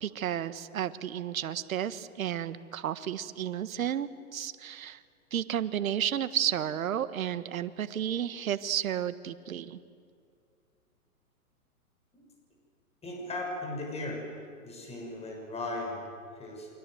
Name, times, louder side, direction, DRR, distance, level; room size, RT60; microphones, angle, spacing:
voice 1, 0.0-5.0 5.3-9.8, right 10 dB, 65° right, 12 dB, 1.5 m, -32 dB
voice 2, 13.0-14.2 14.6-16.8, left 2 dB, 15° left, 0 dB, 6.6 m, -37 dB
29.0 x 25.5 x 7.8 m, 2.3 s
hypercardioid pair, 130°, 45 cm